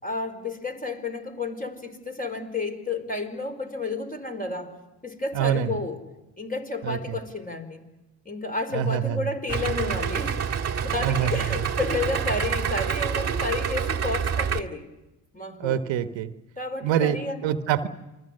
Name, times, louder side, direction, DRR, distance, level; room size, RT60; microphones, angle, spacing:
voice 1, 0.0-4.7 5.0-6.0 6.4-7.8 8.2-10.4 10.8-14.9 15.3-15.8 16.6-17.5, left 3 dB, 20° left, 5 dB, 4.9 m, -31 dB
voice 2, 5.3-5.8 6.8-7.1 8.7-9.3 11.0-11.6 15.6-16.3 16.8-17.9, right 10 dB, 70° right, 9 dB, 1.4 m, -26 dB
Idling, 9.5-14.6, right 7 dB, 35° right, 1.6 m, -27 dB
28.5 x 22.0 x 6.6 m, 1.0 s
hypercardioid pair, 60°, 47 cm